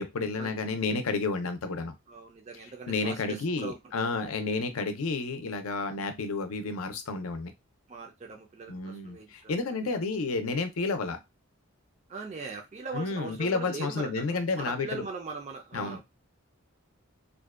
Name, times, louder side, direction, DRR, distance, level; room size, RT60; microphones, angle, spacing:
voice 1, 0.0-1.9 2.9-7.5 8.7-11.2 12.9-15.0 15.7-16.0, left 3 dB, 90° left, 0.5 m, -31 dB
voice 2, 2.1-4.3 7.9-10.0 12.1-16.0, right 4 dB, 35° right, 0.3 m, -41 dB
2.5 x 2.2 x 2.3 m
head